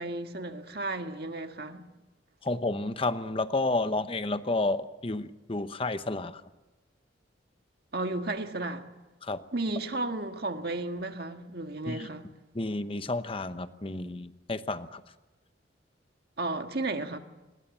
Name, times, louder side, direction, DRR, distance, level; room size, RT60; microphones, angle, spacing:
voice 1, 0.0-1.8 7.9-8.8 9.5-12.3 16.4-17.2, right 2 dB, 55° right, 1.7 m, -33 dB
voice 2, 2.4-6.4 9.2-9.4 11.9-12.1 12.5-15.0, left 2 dB, 30° left, 0.9 m, -31 dB
25.0 x 20.5 x 7.3 m
head